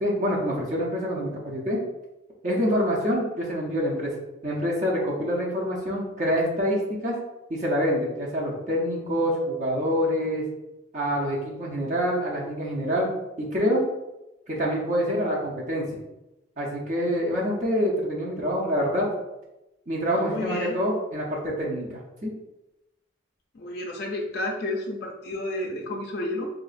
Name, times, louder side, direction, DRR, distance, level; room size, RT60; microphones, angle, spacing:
voice 1, 0.0-1.8 2.4-4.1 4.4-7.1 7.5-10.4 10.9-13.1 13.4-13.8 14.5-16.0 16.6-19.1 19.9-21.9 22.2-22.3, equal, 35° right, -4 dB, 0.6 m, -26 dB
voice 2, 20.1-20.8 23.5-26.5, left 2 dB, 50° left, 0 dB, 0.4 m, -31 dB
3.9 x 2.3 x 2.4 m, 0.96 s
head